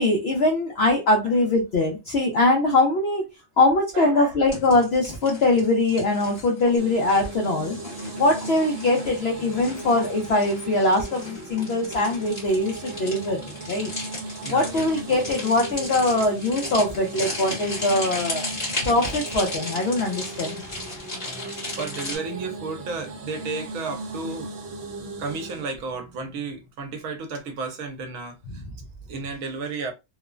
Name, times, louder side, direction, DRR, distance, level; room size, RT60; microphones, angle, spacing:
voice 1, 0.0-3.2 3.6-7.8 8.2-13.9 14.5-18.5 18.8-20.6, left 2 dB, 60° left, 0.7 m, -22 dB
voice 2, 3.9-4.3 14.4-14.8 18.5-18.6 21.2-24.5 25.2-28.6 29.1-29.9, right 4 dB, 80° right, 1.0 m, -33 dB
sound 1, 4.5-22.2, left 2 dB, 30° left, 1.2 m, -36 dB
sound 2, 6.8-25.7, right 3 dB, 60° right, 0.8 m, -37 dB
3.0 x 2.0 x 2.3 m
omnidirectional pair, 1.4 m